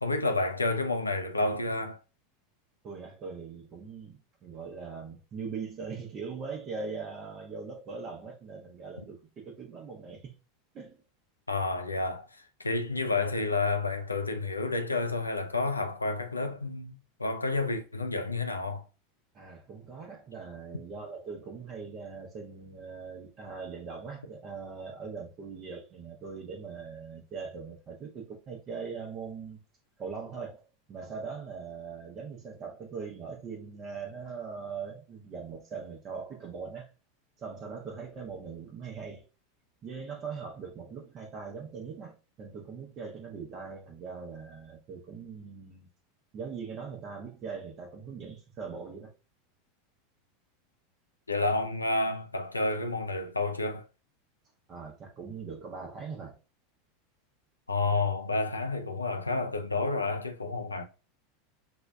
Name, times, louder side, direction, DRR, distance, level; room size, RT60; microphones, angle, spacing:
voice 1, 0.0-2.0 11.5-18.9 51.3-53.9 57.7-60.8, left 3 dB, 90° left, 0.4 m, -30 dB
voice 2, 2.8-10.3 10.7-11.0 19.3-29.6 30.0-30.6 30.9-36.9 37.4-39.2 39.8-45.9 46.3-49.1 54.7-56.4, right 5 dB, 35° right, 0.8 m, -41 dB
6.0 x 2.3 x 2.2 m
figure-of-eight pair, 85°, 0 cm